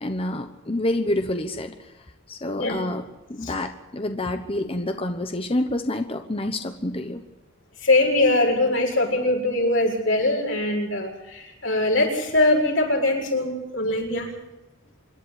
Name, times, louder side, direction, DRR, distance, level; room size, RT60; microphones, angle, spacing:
voice 1, 0.0-1.9 2.3-3.0 3.3-7.2, left 1 dB, 30° left, 6 dB, 1.0 m, -28 dB
voice 2, 7.8-14.3, left 2 dB, 90° left, 0 dB, 7.2 m, -22 dB
26.5 x 11.5 x 9.6 m, 0.99 s
head